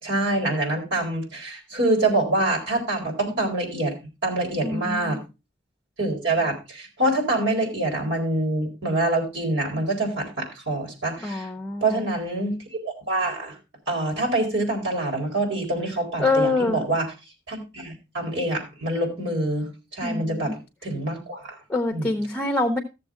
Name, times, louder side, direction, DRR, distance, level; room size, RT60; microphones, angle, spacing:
voice 1, 0.0-3.9 4.2-5.2 6.0-11.5 11.8-13.6 13.9-17.1 17.5-21.6 21.9-22.1, right 2 dB, 70° right, 0 dB, 4.3 m, -26 dB
voice 2, 4.6-5.2 11.2-12.0 16.2-16.8 20.0-20.5 21.7-22.8, left 2 dB, 10° left, 5 dB, 0.7 m, -25 dB
14.0 x 7.2 x 3.6 m, 0.28 s
head